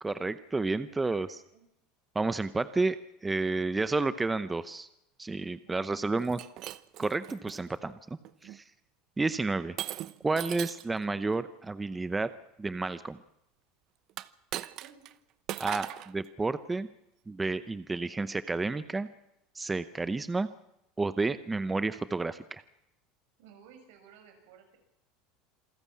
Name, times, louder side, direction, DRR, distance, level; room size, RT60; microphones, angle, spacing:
voice 1, 0.0-1.4 2.1-4.9 5.2-6.4 7.0-8.0 8.4-8.6 9.2-9.8 10.2-12.3 12.6-13.2 15.6-16.9 17.3-19.1 19.5-20.5 21.0-22.6, right 3 dB, 10° right, 13 dB, 0.7 m, -31 dB
voice 2, 1.0-1.6 5.6-6.4 14.8-15.0 15.8-16.0 23.4-24.8, right 7 dB, 80° right, 5 dB, 6.9 m, -56 dB
Shatter, 6.2-7.6 8.2-8.6 9.8-10.9 14.1-15.1 15.5-16.1, right 14 dB, 50° right, 0.8 m, -39 dB
27.5 x 14.0 x 8.6 m, 0.84 s
supercardioid pair, 140°, 0 cm